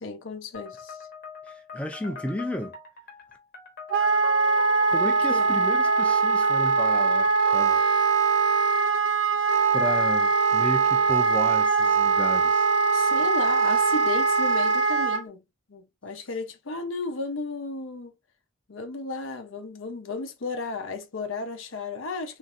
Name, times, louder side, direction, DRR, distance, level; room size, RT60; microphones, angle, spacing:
voice 1, 0.0-1.0 5.0-5.5 12.9-15.4 15.7-18.1 18.7-22.4, left 3 dB, 80° left, 0.7 m, -34 dB
sound 1, 0.5-7.9, left 4 dB, 50° left, 0.9 m, -43 dB
voice 2, 1.4-2.8 4.9-7.8 9.7-12.7, equal, 5° left, 0.4 m, -33 dB
Wind instrument woodwind instrument, 3.9-15.2, right 5 dB, 70° right, 0.5 m, -22 dB
3.2 x 2.6 x 2.5 m
head